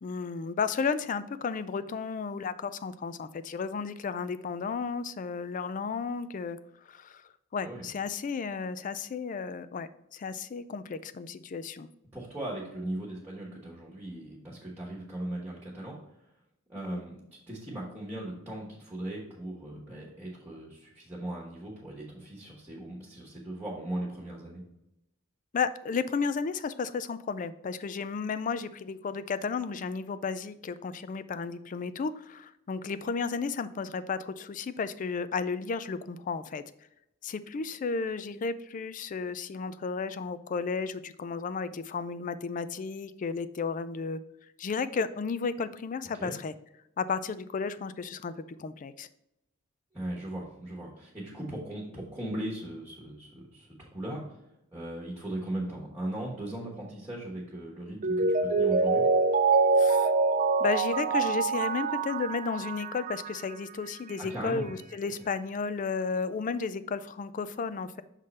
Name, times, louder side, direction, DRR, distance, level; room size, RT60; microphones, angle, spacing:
voice 1, 0.0-6.6 6.9-11.9 16.7-17.0 25.5-36.6 37.2-44.2 44.6-46.5 47.0-49.1 59.8-60.1 60.6-68.0, left 5 dB, 40° left, 14 dB, 0.4 m, -33 dB
voice 2, 12.1-16.0 16.7-17.2 17.5-24.6 46.2-46.3 49.9-54.2 54.7-59.0 64.2-64.7, right 1 dB, 10° right, -4 dB, 1.3 m, -38 dB
Mallet percussion, 58.0-63.5 63.9-64.0, right 4 dB, 40° right, 0.4 m, -25 dB
6.4 x 3.8 x 4.1 m, 0.83 s
head